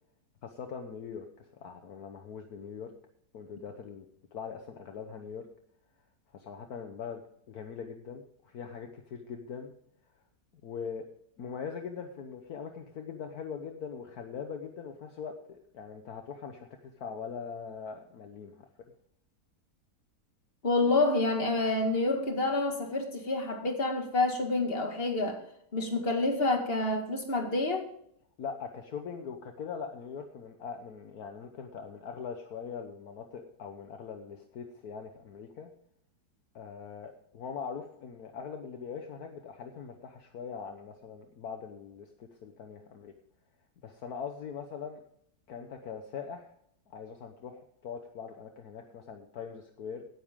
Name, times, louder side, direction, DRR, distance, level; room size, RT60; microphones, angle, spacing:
voice 1, 0.4-1.2 1.6-2.9 3.3-4.1 4.3-5.5 6.3-7.2 7.5-9.7 10.6-11.1 11.4-18.7 28.4-35.7 36.5-43.1 43.8-45.0 45.5-46.5 46.9-50.0, left 6 dB, 65° left, 5 dB, 1.5 m, -41 dB
voice 2, 20.6-25.4 25.7-27.9, left 2 dB, 35° left, 4 dB, 2.2 m, -28 dB
17.5 x 9.9 x 3.7 m, 0.68 s
omnidirectional pair, 1.8 m